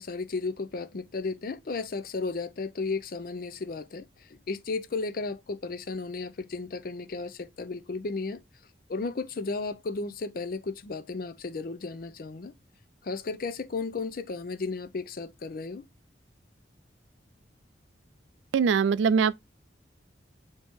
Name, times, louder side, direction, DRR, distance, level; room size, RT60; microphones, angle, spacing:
voice 1, 0.0-4.1 4.5-8.4 8.9-12.5 13.0-15.8, left 3 dB, 50° left, 0.5 m, -34 dB
voice 2, 18.5-19.3, right 6 dB, 85° right, 0.3 m, -22 dB
4.4 x 2.9 x 3.5 m
head